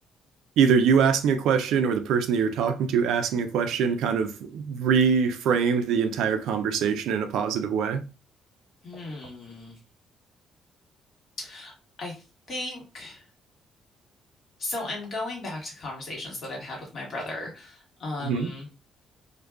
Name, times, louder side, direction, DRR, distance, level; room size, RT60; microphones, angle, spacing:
voice 1, 0.6-8.0 18.2-18.5, right 6 dB, 85° right, 0.3 m, -23 dB
voice 2, 8.8-9.8 11.4-11.7 12.0-12.2 12.5-13.2 14.6-18.7, left 2 dB, 55° left, 1.4 m, -36 dB
2.5 x 2.2 x 2.3 m
cardioid pair, 90°, 0 cm